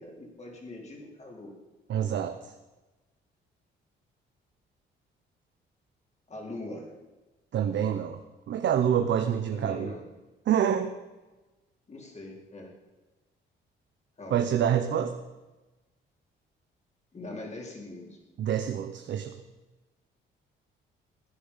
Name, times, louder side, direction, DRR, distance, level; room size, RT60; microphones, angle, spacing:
voice 1, 0.0-1.5 6.3-6.9 9.5-10.0 11.9-12.7 14.2-14.4 17.1-18.2, left 2 dB, 35° left, 0 dB, 4.4 m, -42 dB
voice 2, 1.9-2.5 7.5-8.2 8.5-9.9 10.5-10.9 14.3-15.1 18.4-19.4, right 9 dB, 65° right, 6 dB, 1.0 m, -26 dB
16.0 x 10.0 x 5.8 m, 1.1 s
cardioid pair, 90°, 20 cm